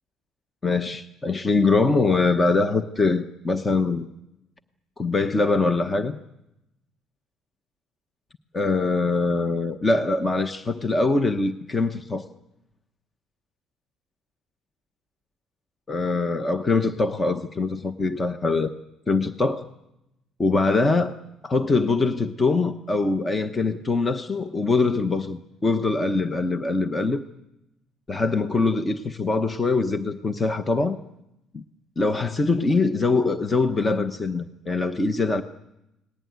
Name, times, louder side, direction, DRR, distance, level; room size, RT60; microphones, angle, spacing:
voice 1, 0.6-4.1 5.0-6.2 8.5-12.2 15.9-18.7 19.1-19.7 20.4-21.1 21.4-27.2 28.1-31.0 31.5-31.6 32.0-35.4, left 3 dB, 15° left, 8 dB, 0.9 m, -23 dB
29.5 x 19.5 x 9.4 m, 0.91 s
cardioid pair, 175°, 0 cm